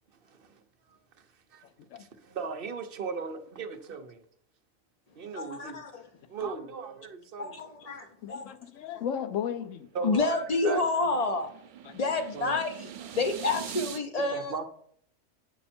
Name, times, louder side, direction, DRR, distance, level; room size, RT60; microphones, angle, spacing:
voice 1, 0.2-0.6 1.2-1.3 1.5-1.6 2.0-4.2 5.2-5.8 6.3-7.6 9.9-10.8 11.1-11.3 12.3-12.6 13.0-13.1 14.3-14.6, right 5 dB, 50° right, 0.9 m, -37 dB
voice 2, 5.3-6.0 7.4-8.5 10.0-11.5 11.9-12.9 13.1-14.5, left 3 dB, 50° left, 0.4 m, -29 dB
voice 3, 8.2-9.9 11.8-12.0, left 8 dB, 70° left, 1.0 m, -35 dB
sound 1, 9.7-14.0, right 9 dB, 70° right, 0.4 m, -43 dB
8.3 x 5.4 x 4.3 m
omnidirectional pair, 1.4 m